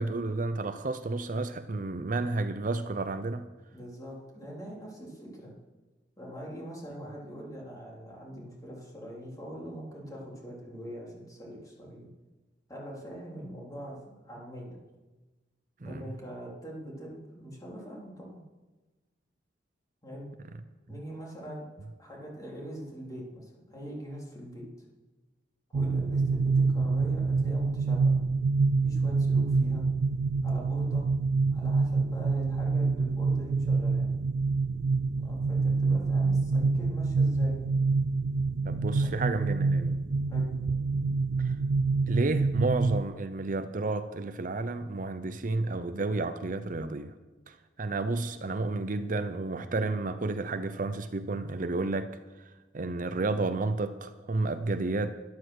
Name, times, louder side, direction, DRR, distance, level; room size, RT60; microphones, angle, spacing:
voice 1, 0.0-3.5 15.8-16.1 38.6-40.0 41.4-41.6 42.1-47.1 47.5-52.1 52.4-55.2, right 3 dB, 50° right, 10 dB, 0.6 m, -31 dB
voice 2, 3.7-5.5 6.2-12.1 12.7-14.8 15.8-18.4 20.0-20.3 20.9-21.7 22.0-24.7 25.7-28.2 28.8-29.9 30.4-31.1 31.5-34.1 35.1-37.6 38.9-39.1 40.3-40.5, equal, 20° left, -3 dB, 3.5 m, -43 dB
sound 1, 25.7-43.0, right 4 dB, 90° right, 0.4 m, -26 dB
12.5 x 11.5 x 6.4 m, 1.2 s
head